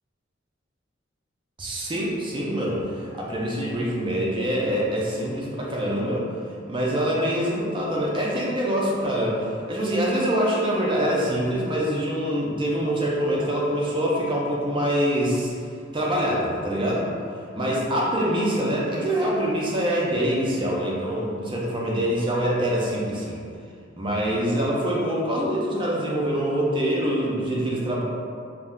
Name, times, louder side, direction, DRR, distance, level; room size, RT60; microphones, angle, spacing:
voice 1, 1.6-6.3 6.7-15.7 15.9-17.1 17.5-23.4 24.0-28.0, equal, 25° right, -4 dB, 0.4 m, -25 dB
2.3 x 2.1 x 3.6 m, 2.3 s
head